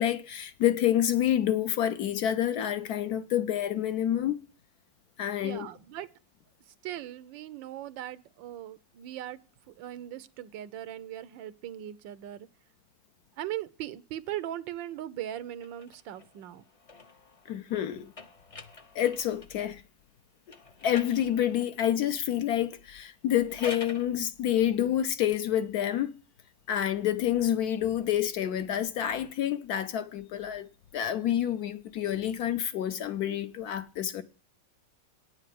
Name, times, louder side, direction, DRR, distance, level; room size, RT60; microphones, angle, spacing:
voice 1, 0.0-4.4 5.2-5.7 17.5-18.1 18.9-19.8 20.8-26.1 26.7-34.2, left 11 dB, 65° left, 1.0 m, -28 dB
voice 2, 5.4-6.1 6.8-9.4 9.7-12.5 13.4-16.6, right 12 dB, 90° right, 1.4 m, -39 dB
sound 1, 15.6-19.6 20.5-21.8 23.3-24.1, left 3 dB, 45° left, 0.4 m, -46 dB
9.3 x 6.6 x 7.5 m
omnidirectional pair, 2.0 m